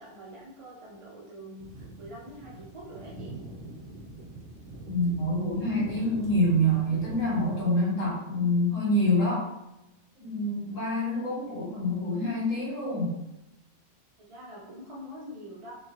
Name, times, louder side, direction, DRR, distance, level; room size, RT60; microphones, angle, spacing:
voice 1, 0.0-3.4 10.7-11.3 14.2-15.8, equal, 45° right, -6 dB, 0.4 m, -45 dB
sound 1, 1.6-7.6, right 2 dB, 70° right, 2.1 m, -43 dB
voice 2, 4.9-9.5 10.2-13.2, equal, 60° left, -6 dB, 1.8 m, -26 dB
3.8 x 2.9 x 2.8 m, 0.91 s
omnidirectional pair, 1.5 m